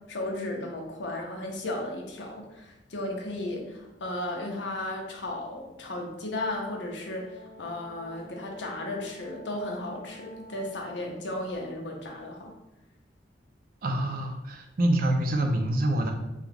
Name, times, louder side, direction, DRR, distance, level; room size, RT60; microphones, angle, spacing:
voice 1, 0.1-7.3 7.6-12.6, left 1 dB, 90° left, 1 dB, 0.7 m, -35 dB
Brass instrument, 6.7-10.9, equal, 55° left, 0.6 m, -50 dB
voice 2, 13.8-16.1, right 1 dB, 55° right, 4 dB, 0.4 m, -26 dB
3.5 x 2.4 x 3.3 m, 0.94 s
head